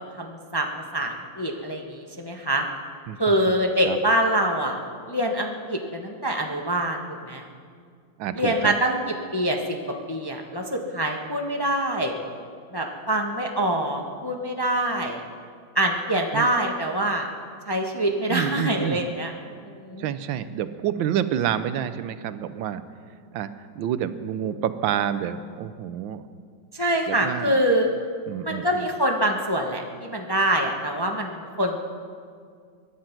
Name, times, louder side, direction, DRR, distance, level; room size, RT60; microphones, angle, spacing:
voice 1, 0.2-2.6 3.2-4.8 5.1-7.5 8.3-9.0 9.3-9.8 10.1-12.2 12.7-15.2 15.7-17.3 17.7-19.3 19.6-20.1 26.7-27.9 28.4-31.8, right 1 dB, 15° left, 2 dB, 0.8 m, -25 dB
voice 2, 8.2-8.7 16.3-16.5 18.3-19.1 20.0-22.8 23.3-26.2 27.1-27.6 28.3-28.9, right 10 dB, 85° right, 13 dB, 1.5 m, -28 dB
23.0 x 10.5 x 5.9 m, 2.1 s
omnidirectional pair, 2.1 m